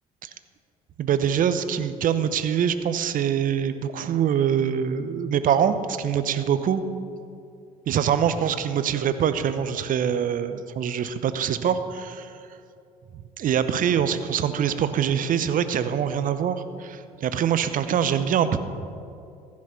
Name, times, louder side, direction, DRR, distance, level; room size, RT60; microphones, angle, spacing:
voice 1, 1.0-6.8 7.9-12.4 13.4-18.6, right 8 dB, 50° right, 12 dB, 0.8 m, -24 dB
15.0 x 6.4 x 5.7 m, 2.5 s
hypercardioid pair, 55°, 18 cm